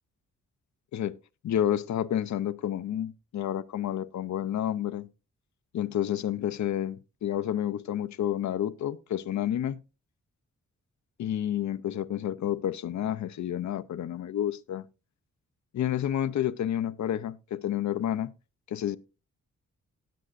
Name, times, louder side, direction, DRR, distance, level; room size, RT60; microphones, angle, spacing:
voice 1, 1.4-5.1 5.7-9.8 11.2-14.8 15.7-18.3 18.7-19.0, left 11 dB, 65° left, 0.5 m, -30 dB
18.0 x 7.6 x 2.5 m
wide cardioid pair, 125°, 31 cm